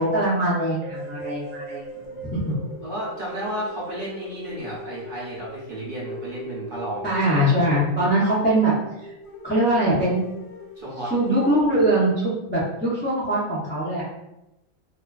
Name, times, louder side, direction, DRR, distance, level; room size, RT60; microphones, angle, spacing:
voice 1, 0.0-1.8 2.2-2.5 7.0-8.7 9.0-9.1 9.4-10.2 11.1-14.0, right 1 dB, 15° left, -9 dB, 0.4 m, -22 dB
sound 1, 0.8-11.2 11.6-11.7, right 2 dB, 75° right, 0.3 m, -42 dB
sound 2, 0.9-8.2 8.6-8.7 8.9-9.0 9.2-11.5, left 4 dB, 65° left, 0.8 m, -42 dB
voice 2, 1.9-2.6 2.8-7.1 10.8-11.1, right 1 dB, 50° right, -6 dB, 0.7 m, -33 dB
2.4 x 2.3 x 2.3 m, 0.90 s
omnidirectional pair, 1.4 m